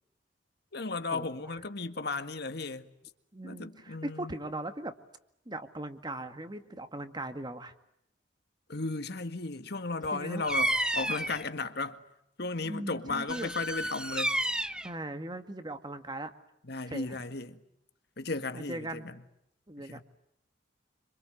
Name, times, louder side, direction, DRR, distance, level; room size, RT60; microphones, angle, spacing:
voice 1, 0.7-2.9 3.4-4.3 8.7-12.0 12.4-14.4 16.7-17.6 18.2-19.2 19.8-20.0, left 3 dB, 65° left, 1.9 m, -35 dB
voice 2, 3.3-4.9 5.5-7.7 10.1-10.5 12.6-13.5 14.8-16.3 16.9-17.2 18.5-19.0 19.7-20.0, right 1 dB, 25° right, 2.0 m, -39 dB
Bird vocalization bird call bird song, 10.4-11.4 13.3-14.9, right 1 dB, 5° right, 1.1 m, -31 dB
27.5 x 26.0 x 8.0 m
head